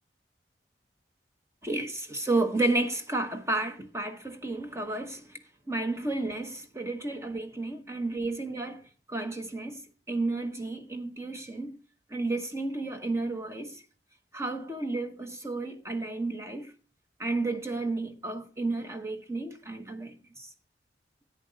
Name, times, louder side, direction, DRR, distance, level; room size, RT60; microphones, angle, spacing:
voice 1, 1.6-5.4 5.7-8.8 9.1-9.8 10.1-11.8 12.1-13.8 14.3-16.7 17.2-20.5, right 2 dB, 15° right, 1.1 m, -32 dB
11.0 x 8.7 x 4.0 m
head